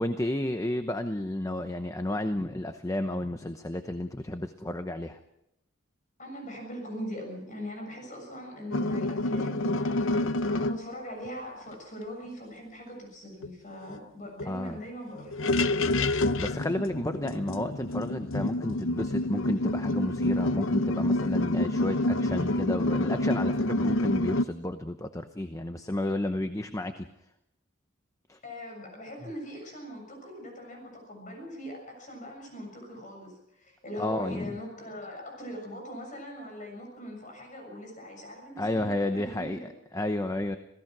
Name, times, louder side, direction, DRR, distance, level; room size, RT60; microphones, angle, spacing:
voice 1, 0.0-5.2 14.5-14.8 16.4-27.1 28.3-28.4 34.0-34.5 38.6-40.6, left 1 dB, 15° left, 8 dB, 0.9 m, -31 dB
voice 2, 6.2-15.9 28.4-39.7, equal, 40° left, 3 dB, 7.0 m, -41 dB
sound 1, 8.7-10.8 13.4-13.5 13.8-14.0 14.4-14.5 15.2-24.4, left 2 dB, 85° left, 0.8 m, -28 dB
26.5 x 17.0 x 6.1 m, 0.85 s
head